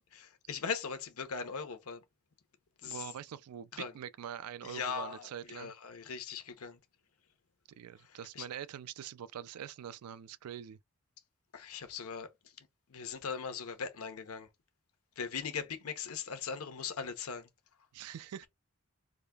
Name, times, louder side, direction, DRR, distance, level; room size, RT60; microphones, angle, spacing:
voice 1, 0.2-2.0 2.8-3.1 3.7-3.9 4.6-6.8 8.0-8.5 11.5-12.3 12.6-14.5 15.2-17.5, left 6 dB, 80° left, 0.8 m, -40 dB
voice 2, 2.8-5.7 7.7-10.8 17.9-18.5, right 9 dB, 85° right, 0.3 m, -44 dB
4.8 x 2.5 x 2.3 m
head